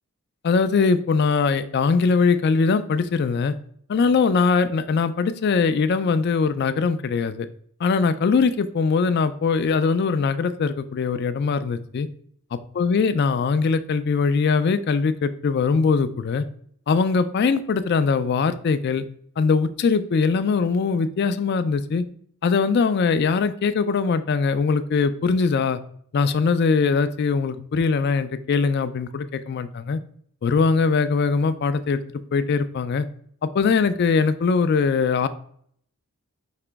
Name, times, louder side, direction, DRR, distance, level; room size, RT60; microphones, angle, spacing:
voice 1, 0.4-3.5 3.9-7.5 7.8-12.1 12.5-16.4 16.9-19.0 19.4-22.0 22.4-25.8 26.1-30.0 30.4-32.0 32.3-33.1 33.5-35.3, left 5 dB, 50° left, 12 dB, 0.3 m, -21 dB
4.9 x 2.9 x 3.3 m, 0.63 s
head